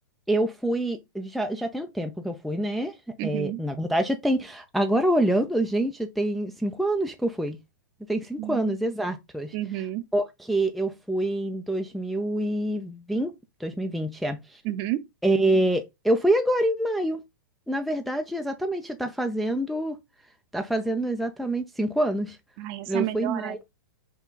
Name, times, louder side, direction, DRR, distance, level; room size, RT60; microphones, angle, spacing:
voice 1, 0.3-3.0 3.2-7.6 8.1-9.5 10.1-13.3 13.6-14.6 15.2-17.2 17.7-20.0 20.5-22.4 22.9-23.6, right 1 dB, ahead, 0.4 m, -26 dB
voice 2, 3.2-3.6 8.4-8.8 9.5-10.0 14.6-15.0 22.6-23.6, right 14 dB, 40° right, 0.6 m, -31 dB
5.6 x 2.3 x 3.8 m
hypercardioid pair, 125°, 11 cm